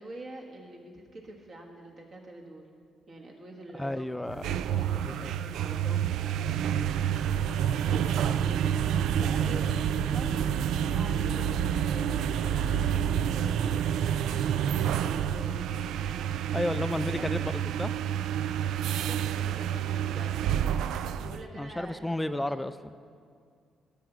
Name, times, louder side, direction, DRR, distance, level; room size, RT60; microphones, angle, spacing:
voice 1, 0.0-2.7 3.1-7.0 7.6-10.6 10.9-15.6 16.8-17.5 19.0-20.9 21.1-22.7, right 1 dB, 50° right, -1 dB, 1.6 m, -46 dB
voice 2, 3.7-4.6 5.0-5.3 16.5-17.9 21.6-23.0, left 1 dB, 10° left, 13 dB, 0.3 m, -32 dB
sound 1, 4.3-21.4, right 9 dB, 85° right, 0.3 m, -28 dB
13.5 x 6.8 x 6.0 m, 2.2 s
cardioid pair, 90°, 0 cm